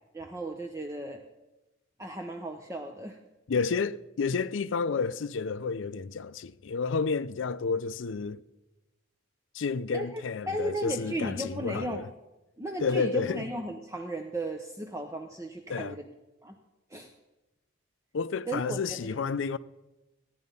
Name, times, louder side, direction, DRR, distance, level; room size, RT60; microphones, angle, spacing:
voice 1, 0.1-1.2 2.0-3.2 9.9-12.0 12.6-16.1 16.4-16.6 16.9-17.1 18.5-19.2, right 1 dB, 15° right, 0.7 m, -35 dB
voice 2, 3.5-8.4 9.5-12.0 12.8-13.4 15.7-15.9 18.1-19.6, left 5 dB, 65° left, 0.5 m, -30 dB
16.0 x 10.5 x 5.4 m
head